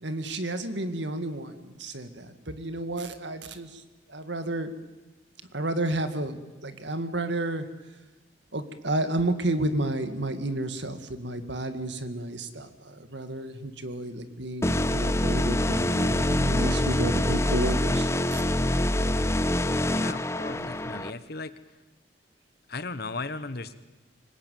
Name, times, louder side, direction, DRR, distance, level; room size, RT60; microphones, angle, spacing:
voice 1, 0.0-3.8 4.1-4.7 5.5-7.7 8.5-18.4 20.6-20.7, right 1 dB, 65° right, 10 dB, 2.0 m, -31 dB
sound 1, 14.6-21.1, left 1 dB, 15° left, 0.8 m, -25 dB
voice 2, 19.9-21.5 22.7-23.8, left 3 dB, 55° left, 13 dB, 1.2 m, -36 dB
25.5 x 20.0 x 9.3 m, 1.1 s
head